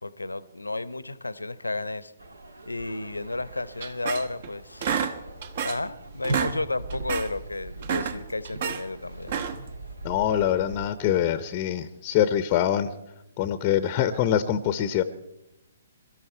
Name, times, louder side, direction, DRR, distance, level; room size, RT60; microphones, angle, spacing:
voice 1, 0.0-2.1 2.7-4.9 5.6-9.3, left 2 dB, 80° left, 17 dB, 0.8 m, -32 dB
sound 1, 2.2-10.9, right 2 dB, 70° right, 1.8 m, -43 dB
sound 2, 3.8-4.5 4.8-5.9 6.2-6.6 6.9-7.3 7.7-8.8 9.2-9.7, right 6 dB, 45° right, 1.3 m, -29 dB
voice 2, 10.0-12.9 13.4-15.0, left 10 dB, 30° left, 13 dB, 0.8 m, -24 dB
23.5 x 13.5 x 4.5 m, 0.87 s
figure-of-eight pair, 125°, 0 cm